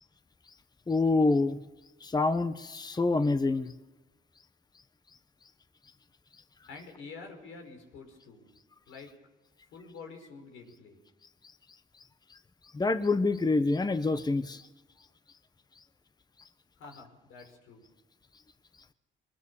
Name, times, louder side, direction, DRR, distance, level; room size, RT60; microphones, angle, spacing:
voice 1, 0.9-1.6 2.0-3.7 12.7-14.6, left 3 dB, 20° left, 11 dB, 1.1 m, -26 dB
voice 2, 6.7-8.5 8.9-9.1 9.7-11.0 16.8-17.9, left 4 dB, 90° left, 3 dB, 5.3 m, -48 dB
24.0 x 20.5 x 7.1 m, 1.1 s
cardioid pair, 90°, 20 cm